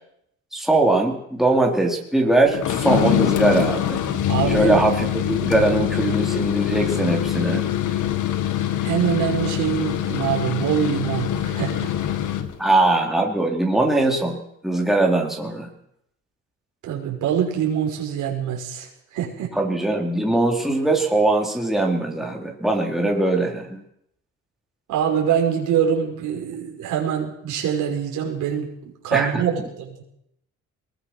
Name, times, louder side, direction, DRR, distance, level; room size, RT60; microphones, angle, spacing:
voice 1, 0.5-4.0 4.5-7.6 12.6-14.4 14.6-15.7 19.5-23.8 29.1-29.4, right 2 dB, ahead, 0 dB, 4.2 m, -21 dB
sound 1, 2.5-12.6, left 11 dB, 75° left, 1.9 m, -24 dB
voice 2, 4.3-4.8 8.8-11.9 16.8-19.5 24.9-28.7 29.0-29.9, right 8 dB, 90° right, 0 dB, 5.7 m, -24 dB
22.5 x 20.0 x 6.3 m, 0.77 s
cardioid pair, 90°, 30 cm